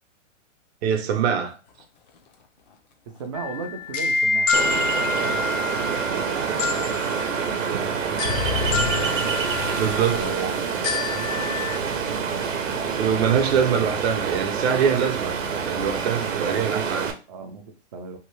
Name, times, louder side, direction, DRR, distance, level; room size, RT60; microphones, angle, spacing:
voice 1, 0.8-1.6 6.4-6.5 9.8-10.5 13.0-17.1, right 7 dB, 55° right, 0.8 m, -24 dB
Motor vehicle (road), 1.0-1.3 1.7-16.1 16.5-16.9, left 5 dB, 35° left, 0.5 m, -38 dB
voice 2, 3.1-5.4 6.0-9.3 10.0-10.7 11.1-11.6 11.9-12.5 16.4-18.2, right 5 dB, 25° right, 0.4 m, -37 dB
sound 1, 3.3-11.8, left 4 dB, 75° left, 0.7 m, -28 dB
Ocean, 4.5-17.1, right 6 dB, 85° right, 0.8 m, -27 dB
2.8 x 2.7 x 3.1 m
hypercardioid pair, 155°, 37 cm